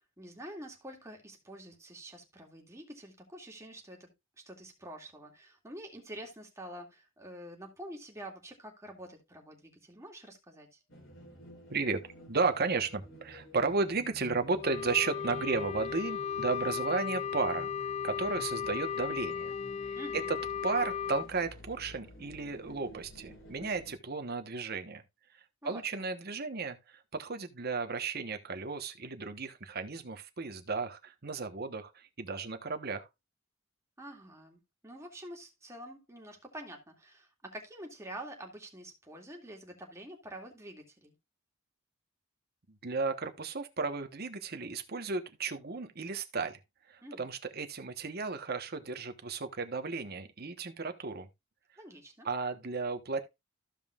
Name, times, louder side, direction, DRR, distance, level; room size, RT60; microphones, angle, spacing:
voice 1, 0.0-4.1 4.4-10.8 20.0-20.3 25.6-25.8 34.0-41.1 47.0-47.3 51.8-52.3, right 1 dB, 15° right, 2.3 m, -47 dB
sound 1, 10.9-23.9, equal, 65° left, 3.8 m, -52 dB
voice 2, 11.7-12.0 12.3-17.7 18.0-19.5 19.8-20.4 20.6-25.0 25.6-33.1 42.8-46.6 46.9-51.3 52.2-53.3, right 4 dB, 50° right, 1.1 m, -34 dB
Wind instrument woodwind instrument, 14.6-21.3, left 7 dB, 30° left, 0.4 m, -36 dB
Marimba xylophone / Wood, 19.5-22.2, equal, 85° left, 3.8 m, -58 dB
14.5 x 5.4 x 2.4 m
head